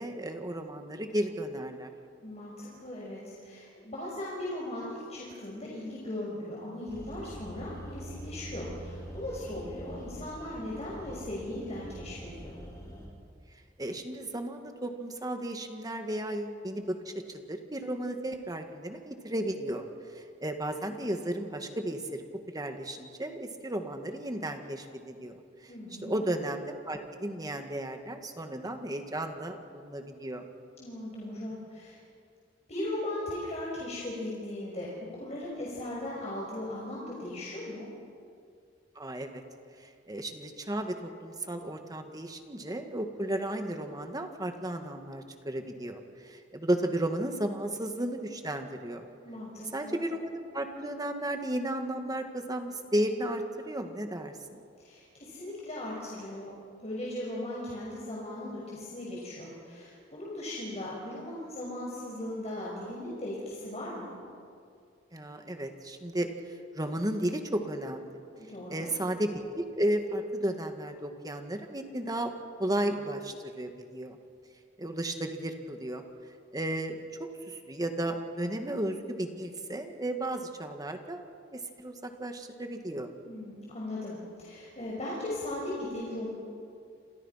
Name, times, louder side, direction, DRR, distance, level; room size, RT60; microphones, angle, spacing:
voice 1, 0.0-1.9 13.8-19.8 20.1-25.7 26.0-30.4 39.0-39.4 39.8-49.0 49.7-54.6 65.1-68.1 68.7-72.3 72.6-74.2 74.8-76.0 76.5-77.0 77.4-81.2 81.5-83.1, right 1 dB, 20° right, 5 dB, 2.0 m, -34 dB
voice 2, 2.2-12.6 25.7-26.2 30.8-32.0 32.7-37.9 49.2-50.0 54.8-64.1 68.3-68.9 83.2-86.3, left 1 dB, 35° left, -5 dB, 5.9 m, -38 dB
sound 1, 6.9-13.1, right 1 dB, 20° left, 6.6 m, -44 dB
28.5 x 28.0 x 5.8 m, 2.3 s
head